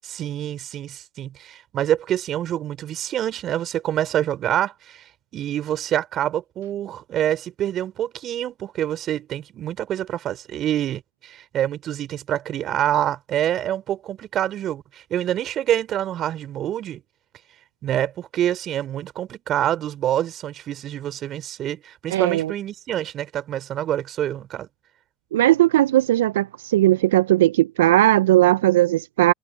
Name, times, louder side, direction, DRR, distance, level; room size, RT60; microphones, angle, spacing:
voice 1, 0.0-5.0 5.3-17.0 17.8-24.7, right 11 dB, 55° right, 3.9 m, -26 dB
voice 2, 22.1-22.5 25.3-29.3, right 15 dB, 85° right, 0.5 m, -18 dB
hypercardioid pair, 60°, 0 cm